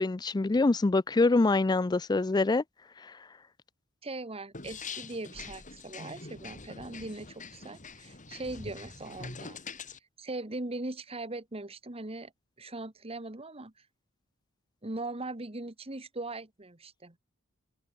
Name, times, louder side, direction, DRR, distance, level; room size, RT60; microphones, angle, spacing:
voice 1, 0.0-2.6 3.0-3.2, left 3 dB, 20° left, 0.4 m, -25 dB
voice 2, 4.0-9.6 10.2-12.3 12.6-13.7 14.8-17.2, right 2 dB, 25° right, 1.7 m, -40 dB
sound 1, 4.5-10.0, left 4 dB, 35° left, 4.3 m, -44 dB
open air
head